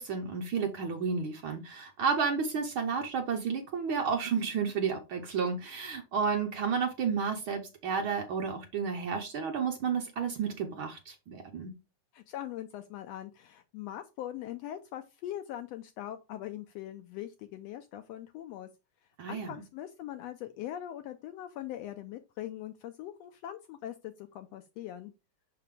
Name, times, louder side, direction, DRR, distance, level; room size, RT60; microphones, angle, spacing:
voice 1, 0.0-11.7 19.2-19.5, right 6 dB, 80° right, 1.1 m, -31 dB
voice 2, 12.1-18.7 19.3-25.1, left 12 dB, 85° left, 1.4 m, -41 dB
5.8 x 5.3 x 3.4 m
omnidirectional pair, 3.5 m